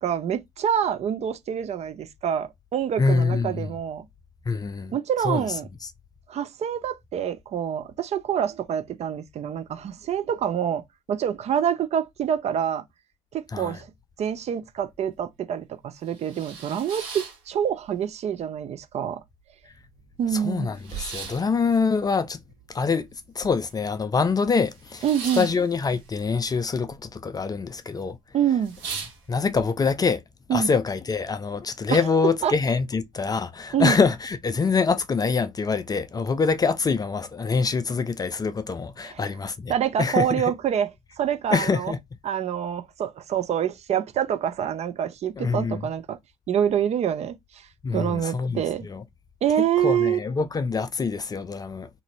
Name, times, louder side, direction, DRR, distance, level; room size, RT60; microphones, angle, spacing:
voice 1, 0.0-4.1 4.9-5.7 6.3-12.8 13.3-13.9 14.2-19.2 20.2-20.7 25.0-25.5 28.3-28.7 30.5-30.7 31.9-32.0 32.4-32.5 33.7-34.0 39.0-39.2 39.7-40.9 41.2-41.9 42.2-46.2 46.5-47.4 47.9-48.9 49.4-50.2, right 9 dB, 40° right, 0.5 m, -26 dB
voice 2, 3.0-3.7 4.5-5.0 5.2-5.5 13.5-13.8 20.3-22.4 22.7-23.1 23.4-25.0 25.3-28.2 29.3-30.2 30.5-39.7 40.0-40.5 41.5-42.0 45.4-45.9 47.8-49.0 49.8-51.9, left 5 dB, 20° left, 0.4 m, -25 dB
sound 1, 14.8-14.9 15.3-15.4 15.9-18.1 18.4-19.1 19.5-19.6 19.7-23.9 24.2-27.0 27.2-27.8 28.2-28.3 28.6-29.6, right 6 dB, 65° right, 1.2 m, -39 dB
2.8 x 2.5 x 3.0 m
figure-of-eight pair, 55°, 17 cm